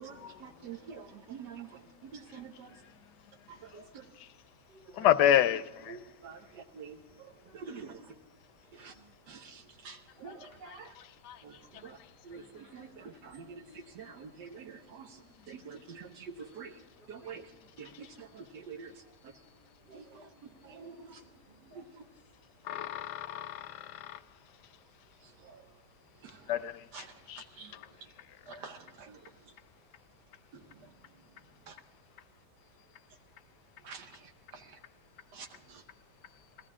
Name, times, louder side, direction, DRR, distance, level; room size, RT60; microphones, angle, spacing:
voice 1, 0.0-1.7 2.0-2.7 3.5-4.0 5.0-5.1 5.9-7.9 8.8-8.9 9.3-10.9 11.4-11.6 11.8-12.0 12.2-15.1 15.5-16.7 17.1-17.5 17.8-18.9 19.9-20.3 20.6-21.2 21.7-21.8 25.5-25.6 26.2-26.4 26.9-27.1 27.6-27.7 28.5-29.2 31.7-31.8 33.8-34.1 34.5-34.7 35.3-35.8, right 6 dB, 75° right, 1.5 m, -47 dB
voice 2, 0.6-1.6 2.0-2.1 4.7-5.0 7.4-7.9 8.7-9.1 10.2-10.4 11.7-11.9 12.3-13.1 15.6-15.7 16.5-16.7 17.0-17.4 17.7-18.4 19.9-22.2 26.2-26.4 30.6-31.3, right 2 dB, 30° right, 2.0 m, -63 dB
voice 3, 5.0-5.6 11.3-11.4 22.7-23.7 26.5-26.7 27.3-27.4, left 10 dB, 75° left, 1.1 m, -26 dB
19.5 x 14.5 x 3.7 m
omnidirectional pair, 1.9 m